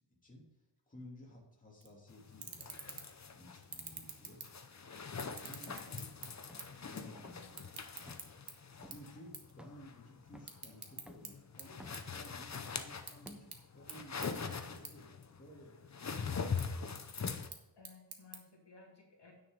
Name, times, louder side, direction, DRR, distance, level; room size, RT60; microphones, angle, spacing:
voice 1, 0.2-3.0 3.3-4.4 5.4-6.1 6.7-7.7 8.9-11.8 12.1-16.6, left 1 dB, 20° left, -3 dB, 3.0 m, -56 dB
sound 1, 1.8-1.9 2.3-3.2 3.6-4.9 5.3-6.8 7.1-8.5 8.9-9.1 9.3-9.5 9.9-11.3 11.6-12.6 12.9-13.6 13.9-14.0 14.2-14.3 14.8-14.9 15.3-15.9 16.3-16.6 17.3-18.4, right 5 dB, 65° right, 1.5 m, -47 dB
sound 2, 2.1-17.5, left 5 dB, 40° left, 0.8 m, -43 dB
voice 2, 5.5-6.3 6.7-7.5 17.8-19.3, left 3 dB, 70° left, -2 dB, 2.5 m, -59 dB
sound 3, 5.7-5.9 6.5-6.8 7.1-7.5 8.1-8.3 8.8-9.0 9.6-9.9 10.3-10.6 11.1-11.3 11.7-12.1 12.5-12.8 13.2-13.6 14.0-14.1, equal, ahead, 0.7 m, -55 dB
9.7 x 6.5 x 5.3 m, 0.98 s
wide cardioid pair, 110°, 43 cm